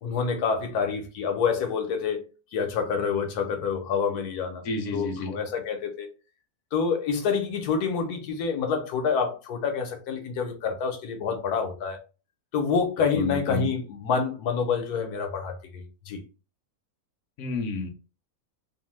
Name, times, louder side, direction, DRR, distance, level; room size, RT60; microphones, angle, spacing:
voice 1, 0.0-2.2 2.5-4.6 4.9-6.1 6.7-12.0 12.5-16.2, left 5 dB, 85° left, 1.2 m, -27 dB
voice 2, 4.6-5.4 13.1-13.7 17.4-17.9, left 3 dB, 65° left, 0.8 m, -30 dB
2.9 x 2.0 x 3.1 m
omnidirectional pair, 1.6 m